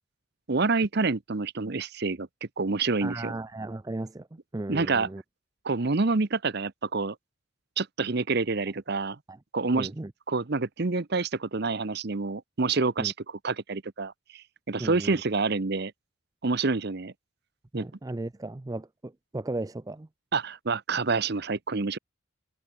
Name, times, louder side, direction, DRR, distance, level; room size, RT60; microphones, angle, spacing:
voice 1, 0.5-2.3 2.6-3.4 4.7-5.1 5.6-7.1 7.8-9.2 9.5-9.9 10.3-13.1 13.4-15.9 16.4-17.1 17.7-17.9 20.3-22.0, right 3 dB, 50° right, 0.8 m, -27 dB
voice 2, 3.0-5.2 9.3-9.4 9.7-10.1 13.0-13.1 14.8-15.2 17.7-20.1, right 2 dB, 15° right, 0.4 m, -36 dB
head